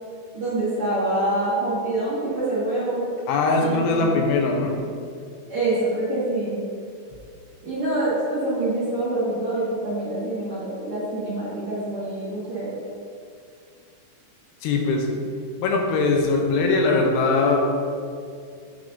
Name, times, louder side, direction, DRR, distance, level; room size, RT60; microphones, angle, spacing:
voice 1, 0.3-3.1 3.6-4.2 5.5-6.6 7.6-12.8, right 2 dB, 50° right, -12 dB, 1.9 m, -26 dB
voice 2, 3.3-4.8 14.6-15.1 15.6-17.6, left 3 dB, 85° left, 1 dB, 2.9 m, -21 dB
9.1 x 5.3 x 2.6 m, 2.3 s
omnidirectional pair, 4.8 m